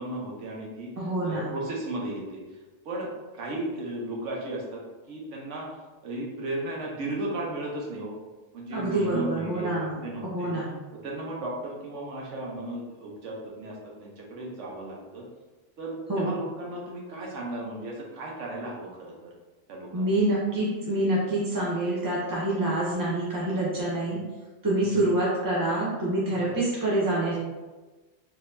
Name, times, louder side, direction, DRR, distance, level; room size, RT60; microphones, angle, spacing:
voice 1, 0.0-0.9 1.2-2.4 2.8-3.1 3.3-5.7 6.0-8.1 8.5-10.5 10.9-15.3 15.8-19.3 19.7-20.2 24.8-25.0 26.4-26.5, right 1 dB, 80° right, -2 dB, 1.2 m, -35 dB
voice 2, 1.0-1.5 8.7-10.0 10.2-10.7 16.1-16.3 19.9-24.2 24.6-27.4, right 1 dB, 25° right, -6 dB, 0.4 m, -26 dB
3.8 x 2.8 x 2.6 m, 1.2 s
omnidirectional pair, 1.2 m